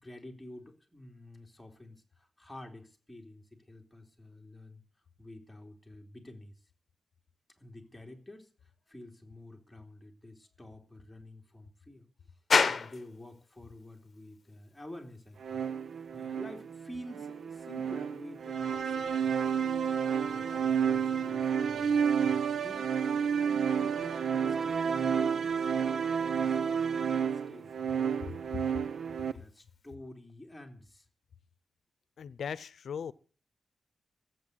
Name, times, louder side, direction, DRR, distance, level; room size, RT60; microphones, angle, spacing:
voice 1, 0.0-4.8 5.2-6.5 7.6-12.1 12.6-15.6 16.1-19.4 20.2-22.9 23.3-25.7 26.1-27.2 27.5-28.6 29.1-31.1, left 1 dB, 5° left, 1 dB, 3.1 m, -50 dB
sound 1, 12.5-30.0, left 5 dB, 55° left, 1.0 m, -39 dB
sound 2, 15.4-29.3, right 7 dB, 90° right, 0.8 m, -30 dB
voice 2, 32.2-33.1, left 7 dB, 85° left, 18 dB, 0.7 m, -38 dB
15.5 x 8.1 x 8.0 m, 0.43 s
wide cardioid pair, 115°, 0 cm